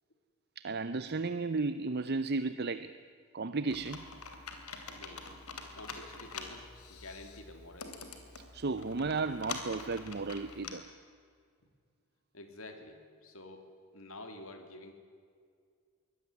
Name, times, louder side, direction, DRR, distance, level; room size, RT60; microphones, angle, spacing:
voice 1, 0.6-2.9 3.3-4.1 8.5-10.8, right 3 dB, 45° right, 13 dB, 0.6 m, -34 dB
Computer keyboard, 3.7-10.7, left 4 dB, 85° left, 3.2 m, -46 dB
voice 2, 4.9-5.3 5.6-8.1 12.3-14.9, left 2 dB, 70° left, 6 dB, 3.1 m, -49 dB
23.0 x 18.0 x 9.8 m, 2.1 s
head